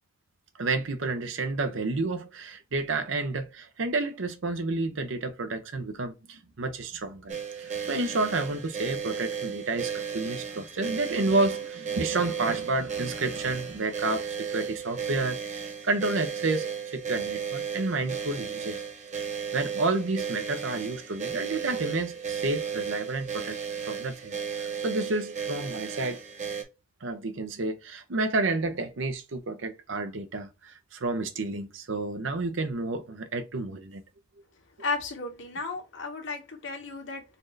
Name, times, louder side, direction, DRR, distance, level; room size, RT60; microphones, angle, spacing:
voice 1, 0.6-18.8 19.1-23.6 23.9-26.2 27.0-34.0, right 3 dB, 70° right, 0.7 m, -30 dB
sound 1, 7.3-26.6, right 7 dB, 40° right, 0.8 m, -34 dB
voice 2, 34.8-37.2, left 3 dB, 70° left, 1.3 m, -34 dB
4.2 x 2.6 x 3.1 m
head